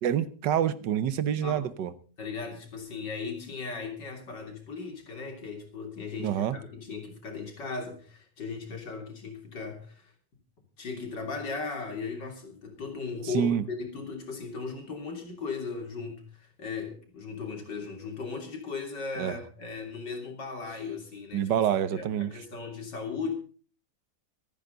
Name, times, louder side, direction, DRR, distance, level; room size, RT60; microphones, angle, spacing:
voice 1, 0.0-1.9 6.2-6.6 13.3-13.6 19.2-19.4 21.3-22.3, right 9 dB, 90° right, 1.6 m, -27 dB
voice 2, 2.2-10.1 10.8-21.5 21.9-23.3, left 4 dB, 90° left, 3.8 m, -37 dB
25.5 x 9.3 x 3.9 m
omnidirectional pair, 1.8 m